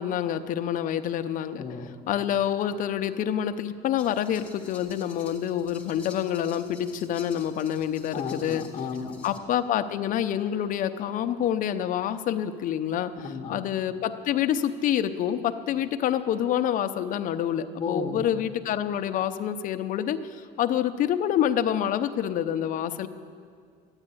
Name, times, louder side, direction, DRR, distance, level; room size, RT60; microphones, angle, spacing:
voice 1, 0.0-1.6 2.1-8.6 9.2-23.1, left 10 dB, 50° left, 9 dB, 0.7 m, -27 dB
voice 2, 1.6-1.9 8.1-9.2 13.2-13.6 17.8-18.3, left 5 dB, 30° left, 1 dB, 1.1 m, -33 dB
sound 1, 4.0-9.4, left 3 dB, 10° left, 1.5 m, -50 dB
13.0 x 9.9 x 9.9 m, 2.1 s
cardioid pair, 170°, 18 cm